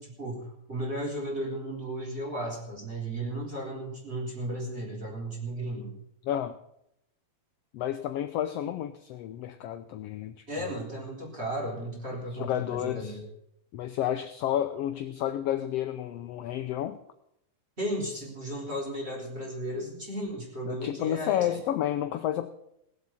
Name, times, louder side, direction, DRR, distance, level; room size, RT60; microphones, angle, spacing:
voice 1, 0.0-5.9 10.5-13.2 17.8-21.6, right 1 dB, 20° right, -2 dB, 3.9 m, -35 dB
voice 2, 6.2-6.6 7.7-10.7 12.3-13.2 13.7-17.0 20.7-22.5, left 11 dB, 75° left, 10 dB, 1.5 m, -31 dB
18.0 x 8.0 x 7.1 m, 0.79 s
omnidirectional pair, 3.3 m